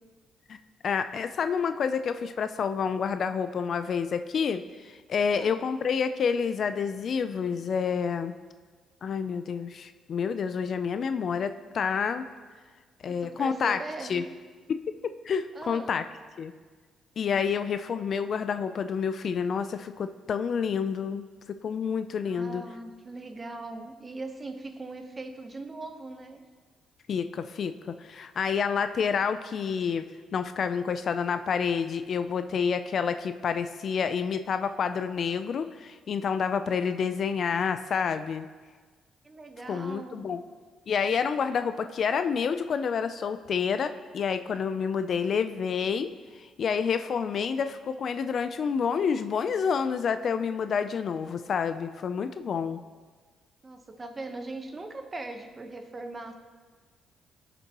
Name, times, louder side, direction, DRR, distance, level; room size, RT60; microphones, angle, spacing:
voice 1, 0.8-8.4 9.0-12.3 13.0-13.8 14.1-14.2 14.7-14.8 15.3-16.0 16.4-16.5 17.2-22.6 27.1-30.1 30.3-38.5 39.7-40.4 40.9-46.1 46.6-52.8, left 6 dB, 55° left, 10 dB, 0.5 m, -28 dB
voice 2, 5.2-5.6 13.0-14.2 15.5-16.0 22.3-26.4 39.2-40.3 53.6-56.3, right 2 dB, 30° right, 6 dB, 1.0 m, -40 dB
16.5 x 6.7 x 3.0 m, 1.4 s
cardioid pair, 90°, 0 cm